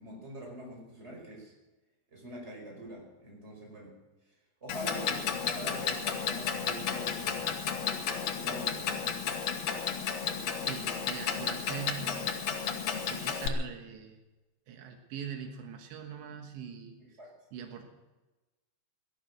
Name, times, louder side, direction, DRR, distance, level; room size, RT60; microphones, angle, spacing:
voice 1, 0.0-1.5 2.1-4.0 4.3-4.4 4.6-7.6 8.4-9.1 17.2-17.4, equal, 15° right, -1 dB, 5.0 m, -44 dB
Clock, 4.7-13.5, left 7 dB, 75° left, 1.6 m, -33 dB
voice 2, 10.6-12.4 13.1-14.2 14.7-17.0 17.5-17.9, right 7 dB, 85° right, 4 dB, 3.7 m, -42 dB
18.5 x 12.5 x 6.2 m, 1.1 s
omnidirectional pair, 5.1 m